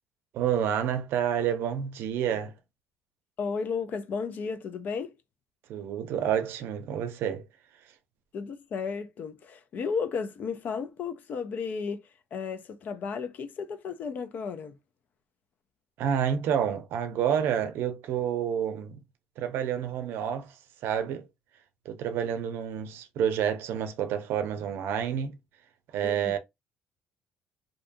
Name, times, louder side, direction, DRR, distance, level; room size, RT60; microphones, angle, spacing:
voice 1, 0.3-2.5 5.7-7.5 16.0-19.0 19.4-20.6 20.8-21.3 21.9-25.4 25.9-26.4, right 9 dB, 70° right, 0.5 m, -29 dB
voice 2, 3.4-5.1 8.3-12.0 12.3-14.8 26.0-26.4, left 5 dB, 45° left, 0.4 m, -33 dB
2.7 x 2.2 x 2.6 m
cardioid pair, 135°, 4 cm